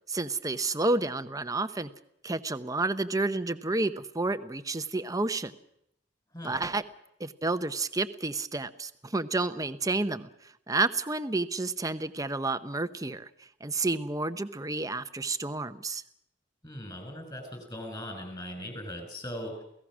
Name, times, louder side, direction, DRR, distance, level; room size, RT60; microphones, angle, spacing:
voice 1, 0.1-1.9 2.2-5.6 6.4-6.8 7.2-16.0, right 3 dB, 20° right, 11 dB, 0.8 m, -30 dB
voice 2, 16.6-19.6, equal, 20° left, 5 dB, 5.8 m, -39 dB
29.0 x 17.0 x 6.2 m, 0.76 s
head